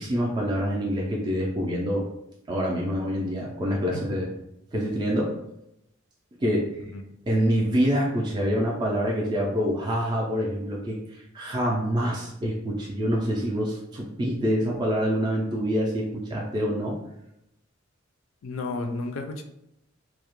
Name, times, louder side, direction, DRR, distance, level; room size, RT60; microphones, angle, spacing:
voice 1, 0.0-2.1 2.5-4.3 4.7-5.4 6.4-6.7 7.3-17.0, equal, 20° right, -2 dB, 0.3 m, -26 dB
voice 2, 18.4-19.4, left 3 dB, 75° left, 5 dB, 0.4 m, -32 dB
2.3 x 2.0 x 2.9 m, 0.83 s
head